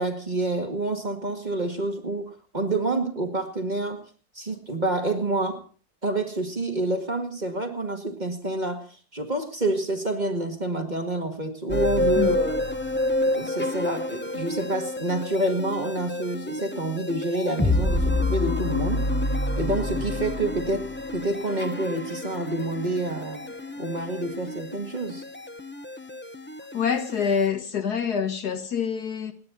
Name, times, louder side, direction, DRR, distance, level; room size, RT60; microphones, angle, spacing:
voice 1, 0.0-4.0 4.4-5.6 6.0-8.9 9.1-12.6 13.3-19.1 19.6-20.9 21.1-23.4 23.8-25.2, right 2 dB, 25° right, 2.0 m, -28 dB
sound 1, 11.7-27.5, left 1 dB, 15° left, 0.3 m, -29 dB
voice 2, 26.7-29.3, left 7 dB, 65° left, 2.0 m, -26 dB
29.0 x 10.0 x 4.0 m
omnidirectional pair, 1.9 m